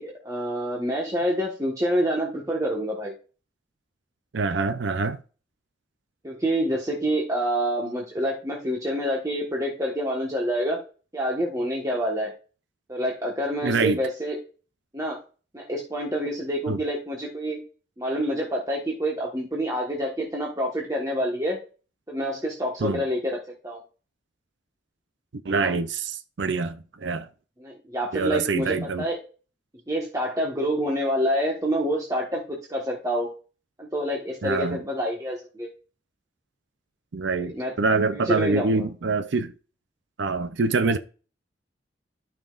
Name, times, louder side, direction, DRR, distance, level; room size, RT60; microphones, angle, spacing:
voice 1, 0.0-3.1 6.2-10.8 11.1-12.3 12.9-14.4 14.9-15.2 15.5-17.6 18.0-21.6 22.1-23.4 23.6-23.8 25.6-25.7 27.6-29.2 29.9-33.3 33.8-35.7 37.5-37.7 38.1-38.8, equal, 20° right, 1.4 m, -27 dB
voice 2, 4.3-5.2 13.6-14.0 16.7-16.8 22.8-23.0 25.4-27.3 28.1-29.1 34.4-34.8 37.1-39.5 40.2-41.0, right 3 dB, 70° right, 0.6 m, -25 dB
13.0 x 5.8 x 2.5 m
head